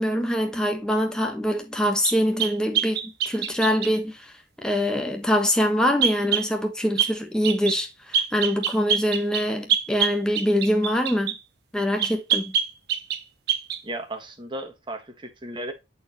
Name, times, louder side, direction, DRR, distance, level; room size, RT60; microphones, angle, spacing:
voice 1, 0.0-4.3 4.6-11.3 11.7-12.5, equal, 5° left, 1.2 m, -24 dB
sound 1, 2.0-4.0 6.0-6.5 7.0-7.2 7.4-7.8 8.1-11.4 12.0-13.2 13.5-13.8, right 8 dB, 55° right, 1.1 m, -25 dB
voice 2, 13.8-15.7, right 1 dB, 25° right, 1.4 m, -35 dB
10.0 x 4.5 x 3.0 m
head